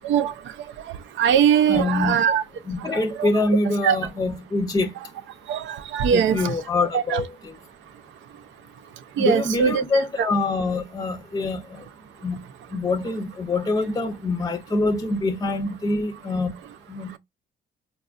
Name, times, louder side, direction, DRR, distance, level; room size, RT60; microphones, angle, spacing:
voice 1, 1.2-2.4 3.2-3.3 3.8-4.0 5.5-6.5 6.9-7.2 9.2-9.8, right 8 dB, 75° right, 0.4 m, -20 dB
voice 2, 1.7-2.2 2.7-5.0 6.1-7.6 9.2-11.8 12.2-16.6 16.9-17.2, left 2 dB, 20° left, 0.5 m, -25 dB
4.2 x 2.3 x 2.4 m
cardioid pair, 90°, 20 cm